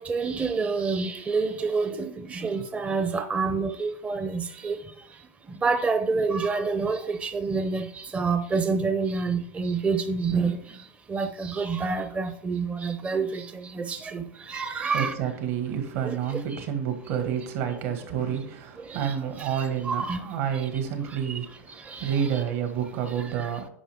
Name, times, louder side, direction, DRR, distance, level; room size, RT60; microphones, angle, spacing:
voice 1, 0.0-4.8 5.6-10.6 11.1-13.4 13.7-14.2 14.5-15.1 16.0-16.2 17.2-17.3 18.9-19.1 19.4-20.2 21.9-22.4, right 4 dB, 15° right, 0.5 m, -27 dB
voice 2, 14.9-23.7, right 8 dB, 65° right, 1.9 m, -29 dB
9.9 x 5.4 x 3.6 m
supercardioid pair, 125°, 8 cm